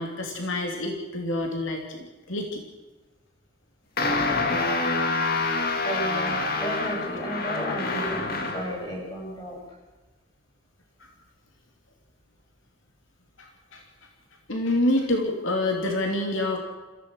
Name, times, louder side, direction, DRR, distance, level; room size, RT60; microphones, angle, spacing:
voice 1, 0.0-2.6 5.4-5.8 13.4-13.8 14.5-16.6, left 1 dB, 70° left, 2 dB, 3.0 m, -27 dB
sound 1, 4.0-8.8, left 3 dB, 45° left, 2.2 m, -26 dB
voice 2, 5.8-8.3 8.5-9.6, equal, 20° left, -1 dB, 7.4 m, -33 dB
27.0 x 16.0 x 6.6 m, 1.2 s
head